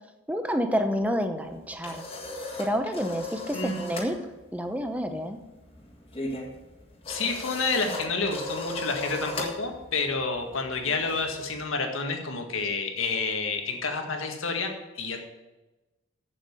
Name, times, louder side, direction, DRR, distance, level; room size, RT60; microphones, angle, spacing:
voice 1, 0.3-2.0 2.6-4.2 4.5-5.4, equal, 5° right, 7 dB, 0.8 m, -28 dB
sound 1, 1.4-4.1 4.4-4.7 5.0-11.6, left 2 dB, 25° left, 1.8 m, -37 dB
voice 2, 3.5-3.9 7.1-15.2, left 4 dB, 80° left, 3 dB, 1.8 m, -29 dB
8.0 x 7.7 x 8.3 m, 1.1 s
head